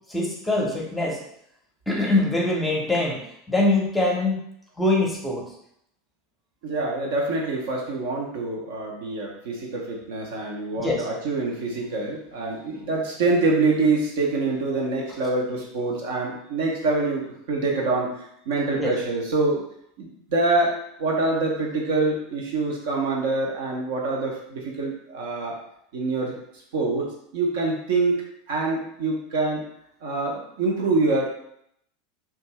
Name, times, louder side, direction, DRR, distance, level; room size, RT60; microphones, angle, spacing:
voice 1, 0.1-1.2 1.9-3.2 3.5-4.4 4.8-5.5 10.8-11.1 18.8-18.9, left 2 dB, 10° left, -2 dB, 0.7 m, -23 dB
voice 2, 6.6-19.6 20.0-25.6 25.9-26.3 26.7-28.2 28.5-29.6 30.0-31.3, right 3 dB, 60° right, -1 dB, 0.6 m, -25 dB
2.6 x 2.3 x 2.9 m, 0.73 s
figure-of-eight pair, 80°, 0 cm